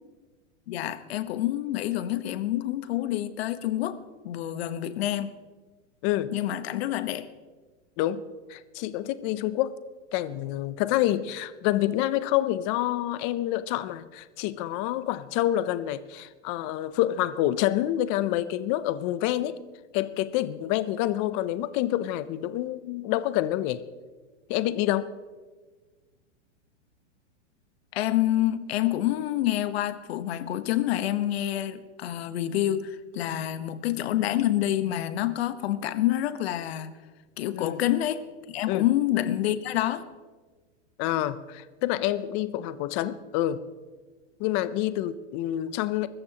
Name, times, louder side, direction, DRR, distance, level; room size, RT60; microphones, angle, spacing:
voice 1, 0.7-4.0 4.2-5.3 6.3-7.3 27.9-36.9 37.4-38.2 38.5-40.0, left 13 dB, 55° left, 12 dB, 1.1 m, -27 dB
voice 2, 6.0-6.3 8.0-8.2 8.5-9.8 10.1-19.6 19.9-23.8 24.5-25.1 33.2-33.3 37.5-37.8 38.7-38.8 41.0-43.6 44.4-46.1, left 13 dB, 25° left, 15 dB, 0.5 m, -27 dB
23.5 x 14.0 x 2.9 m, 1.4 s
hypercardioid pair, 145°, 36 cm